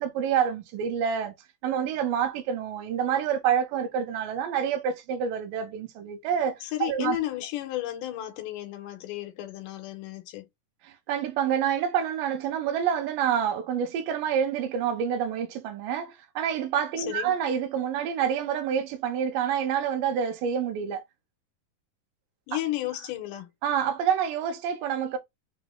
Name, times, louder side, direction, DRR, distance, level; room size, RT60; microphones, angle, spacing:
voice 1, 0.0-1.3 1.6-7.2 10.8-21.0 23.6-25.2, right 8 dB, 90° right, 2.4 m, -27 dB
voice 2, 6.6-10.5 17.0-17.4 22.5-23.5, left 14 dB, 85° left, 2.4 m, -33 dB
5.6 x 2.0 x 3.6 m
omnidirectional pair, 3.7 m